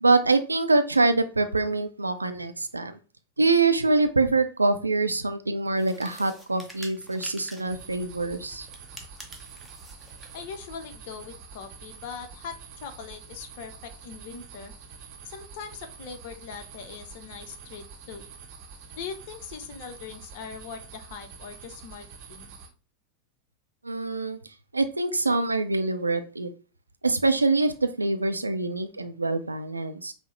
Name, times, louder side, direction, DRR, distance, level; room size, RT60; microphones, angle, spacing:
voice 1, 0.0-3.0 3.4-8.7 23.8-24.4 24.7-26.5 27.0-30.1, right 3 dB, 80° right, 9 dB, 0.4 m, -24 dB
sound 1, 5.7-7.8 8.6-10.4, equal, ahead, 0.8 m, -47 dB
sound 2, 7.7-22.7, right 5 dB, 40° right, 0.7 m, -46 dB
voice 2, 10.3-14.7 15.3-18.3 19.0-22.5, left 6 dB, 50° left, 7 dB, 0.6 m, -41 dB
5.4 x 2.0 x 3.0 m, 0.35 s
figure-of-eight pair, 90°, 0 cm